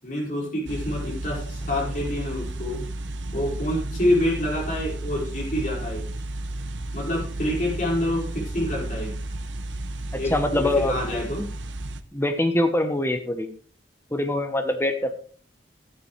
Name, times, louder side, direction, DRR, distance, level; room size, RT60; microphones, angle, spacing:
voice 1, 0.0-2.8 3.3-6.0 6.9-9.1 10.2-11.5, left 1 dB, 45° left, -3 dB, 5.1 m, -27 dB
sound 1, 0.7-12.0, right 1 dB, 85° right, 0.9 m, -33 dB
voice 2, 10.1-10.9 12.1-13.5 14.1-15.1, left 1 dB, 15° left, 6 dB, 1.0 m, -24 dB
13.0 x 9.9 x 3.3 m, 0.41 s
head